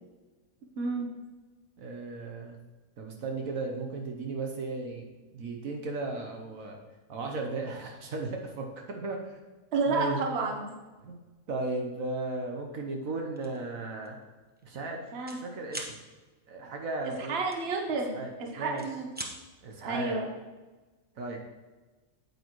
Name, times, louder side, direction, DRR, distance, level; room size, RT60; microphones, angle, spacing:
voice 1, 0.8-1.1 9.7-10.8 15.1-15.4 17.0-19.1 19.8-20.3, right 3 dB, 50° right, 2 dB, 1.3 m, -31 dB
voice 2, 1.8-2.6 3.0-5.1 5.3-6.8 7.1-9.4 9.9-10.3 11.0-11.1 11.5-14.2 14.6-15.0 15.3-16.0 16.5-17.4 18.1-18.8 19.6-20.2 21.2-21.4, right 3 dB, 75° right, 2 dB, 1.4 m, -35 dB
sound 1, 13.4-13.6 14.0-14.2 14.5-15.4 15.7-15.9 17.5-18.3 18.6-19.3, right 1 dB, 10° right, 0.6 m, -40 dB
8.9 x 8.2 x 3.1 m, 1.2 s
omnidirectional pair, 1.5 m